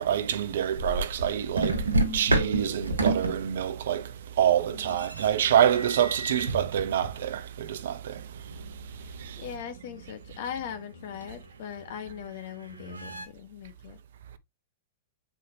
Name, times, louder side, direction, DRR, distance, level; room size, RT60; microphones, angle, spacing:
voice 1, 0.0-1.8 2.1-4.1 4.4-8.2 9.2-9.4, right 10 dB, 65° right, 0.7 m, -26 dB
sound 1, 0.8-1.3 1.6-4.3 4.8-7.3 8.2-13.3, right 2 dB, 85° right, 1.2 m, -31 dB
voice 2, 1.9-2.3 4.6-5.0 9.0-14.0, left 9 dB, 55° left, 1.3 m, -40 dB
7.4 x 4.5 x 2.8 m
figure-of-eight pair, 100°, 0 cm